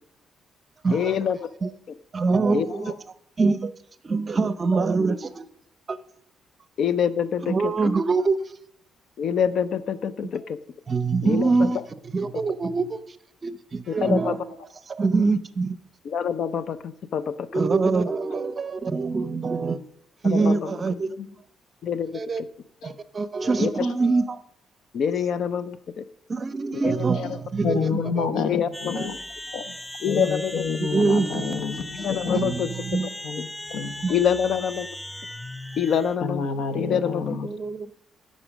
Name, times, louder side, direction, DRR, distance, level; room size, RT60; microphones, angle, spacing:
voice 1, 0.9-1.4 2.5-2.7 6.8-7.9 9.2-10.6 11.2-11.7 12.3-12.4 13.9-14.4 16.0-17.6 20.2-20.7 21.8-22.5 23.6-23.7 24.9-26.0 26.7-27.4 28.3-28.9 30.0-30.6 31.9-32.7 34.1-34.9 35.8-37.4, left 8 dB, 65° left, 14 dB, 0.6 m, -26 dB
voice 2, 2.1-2.9 3.4-3.7 4.0-5.5 5.9-6.0 7.5-8.4 10.9-11.8 12.1-13.0 13.4-14.4 14.9-15.8 17.5-19.8 20.2-21.1 22.1-22.4 22.8-24.4 26.3-28.3 29.0-29.1 30.2-30.3 30.8-31.6 32.3-33.1 34.0-34.2 37.4-37.9, right 4 dB, 35° right, 14 dB, 0.7 m, -24 dB
voice 3, 27.6-29.2 29.5-29.7 30.1-32.0 32.2-32.6 33.2-34.1 36.2-37.5, left 5 dB, 80° left, 10 dB, 1.0 m, -29 dB
sound 1, 28.7-36.2, left 1 dB, 5° left, 0.4 m, -38 dB
12.5 x 5.4 x 6.1 m, 0.73 s
cardioid pair, 90°, 0 cm